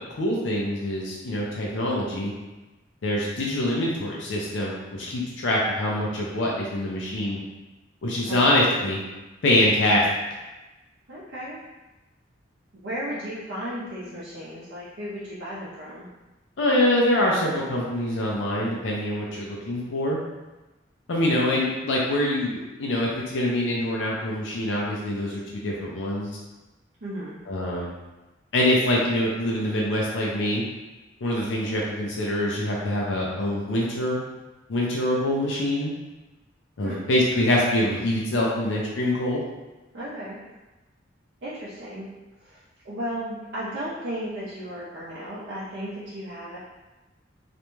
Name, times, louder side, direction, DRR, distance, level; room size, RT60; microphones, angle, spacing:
voice 1, 0.2-2.3 3.0-7.4 8.0-9.0 9.4-10.0 16.6-20.2 21.1-26.3 27.5-27.9 28.5-30.6 31.2-34.2 34.7-35.9 36.8-39.5, left 1 dB, 70° left, -3 dB, 0.5 m, -24 dB
voice 2, 8.3-8.9 11.1-11.6 12.8-16.1 27.0-27.4 36.8-37.1 39.9-40.4 41.4-42.1 42.4-46.6, equal, 60° right, -9 dB, 0.6 m, -35 dB
2.5 x 2.2 x 3.0 m, 1.1 s
head